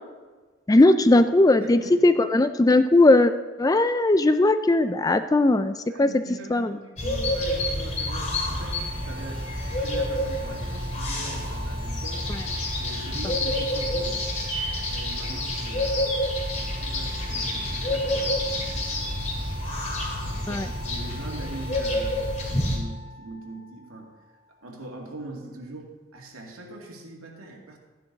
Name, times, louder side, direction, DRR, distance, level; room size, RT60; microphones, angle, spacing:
voice 1, 0.7-3.3 3.6-6.1 6.5-6.7 20.5-20.7, left 2 dB, 15° left, 11 dB, 0.3 m, -18 dB
voice 2, 1.6-2.1 5.9-12.3 12.7-14.2 14.9-16.0 16.6-18.3 20.2-27.8, right 2 dB, 85° right, -1 dB, 2.4 m, -42 dB
sound 1, 7.0-22.8, left 1 dB, 35° left, 2.5 m, -28 dB
sound 2, 7.8-24.7, equal, 60° left, 2.0 m, -43 dB
14.0 x 10.0 x 4.0 m, 1.4 s
head